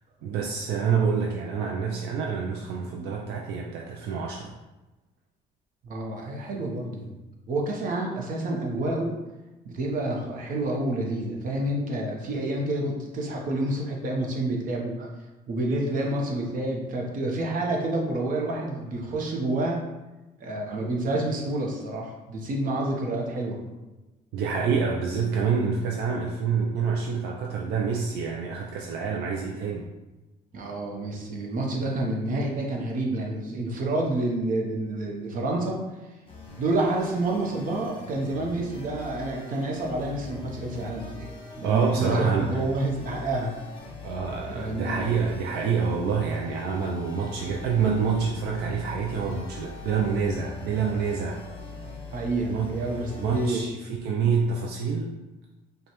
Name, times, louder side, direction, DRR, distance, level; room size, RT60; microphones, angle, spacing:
voice 1, 0.2-4.5 24.3-29.8 41.6-42.6 44.0-51.4 52.5-52.7 53.2-55.1, right 6 dB, 75° right, -1 dB, 0.5 m, -27 dB
voice 2, 5.8-7.1 7.5-9.1 9.6-15.1 15.5-19.8 20.4-23.6 30.5-35.9 36.6-43.5 44.5-45.1 51.8-53.6, right 2 dB, 55° right, 0 dB, 0.9 m, -29 dB
sound 1, 36.3-53.6, left 3 dB, 30° left, 0.9 m, -42 dB
5.1 x 2.3 x 3.0 m, 1.1 s
cardioid pair, 110°, 17 cm